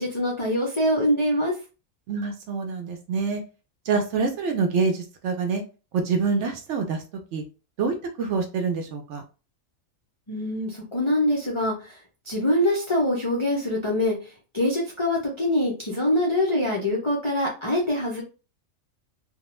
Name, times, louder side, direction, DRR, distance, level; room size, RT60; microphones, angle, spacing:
voice 1, 0.0-1.6 10.3-12.0 12.3-18.2, left 1 dB, 45° left, -3 dB, 0.3 m, -24 dB
voice 2, 2.1-3.4 3.9-5.6 5.9-7.0 7.3-7.4 7.8-9.2, right 4 dB, 65° right, 4 dB, 0.8 m, -26 dB
2.3 x 2.2 x 3.0 m, 0.32 s
omnidirectional pair, 1.4 m